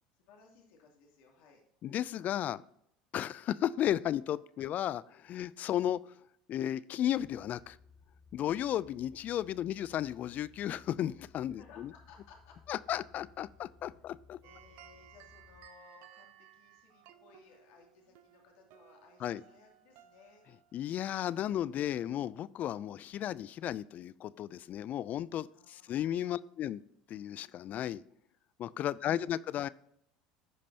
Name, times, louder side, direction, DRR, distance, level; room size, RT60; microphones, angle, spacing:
voice 1, 0.3-1.6 11.5-12.6 14.4-20.5 25.5-26.4 28.9-29.2, left 5 dB, 65° left, 0 dB, 2.6 m, -60 dB
voice 2, 1.8-2.6 3.1-6.0 6.5-7.8 8.3-11.9 12.7-14.4 19.2-19.4 20.7-26.8 27.1-28.0 28.6-29.7, left 11 dB, 45° left, 19 dB, 0.4 m, -34 dB
sound 1, 7.1-15.7, left 5 dB, 20° left, 1.5 m, -61 dB
sound 2, 14.4-22.0, right 12 dB, 60° right, 0.9 m, -60 dB
15.0 x 5.3 x 2.8 m, 0.72 s
hypercardioid pair, 80°, 4 cm